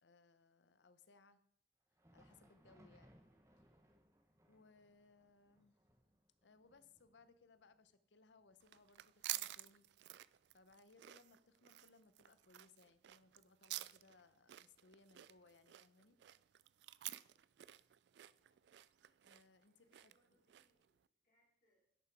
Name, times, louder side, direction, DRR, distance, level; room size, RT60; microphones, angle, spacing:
voice 1, 0.0-1.4 2.1-3.2 4.5-5.8 6.4-9.9 10.5-16.2 19.2-20.1, left 3 dB, 85° left, 12 dB, 0.7 m, -67 dB
Thunder, 1.8-11.3 11.6-11.8 12.5-12.6 13.6-13.7, equal, 15° right, 1.0 m, -71 dB
sound 1, 8.6-20.9, right 16 dB, 75° right, 0.3 m, -50 dB
voice 2, 19.7-21.0 21.2-21.9, equal, 45° left, -4 dB, 3.2 m, -81 dB
11.0 x 6.6 x 4.7 m, 0.71 s
head